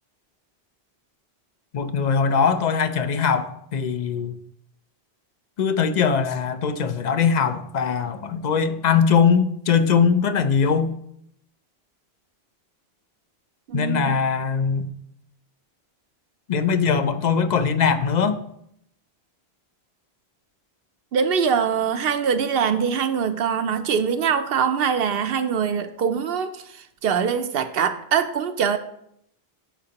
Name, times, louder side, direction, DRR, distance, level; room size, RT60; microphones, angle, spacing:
voice 1, 1.7-4.3 5.6-10.9 13.7-14.9 16.5-18.4, left 6 dB, 50° left, 10 dB, 0.6 m, -21 dB
voice 2, 13.7-14.1 21.1-26.6 27.0-28.8, right 7 dB, 70° right, 9 dB, 0.8 m, -23 dB
13.0 x 5.2 x 2.9 m, 0.74 s
omnidirectional pair, 1.1 m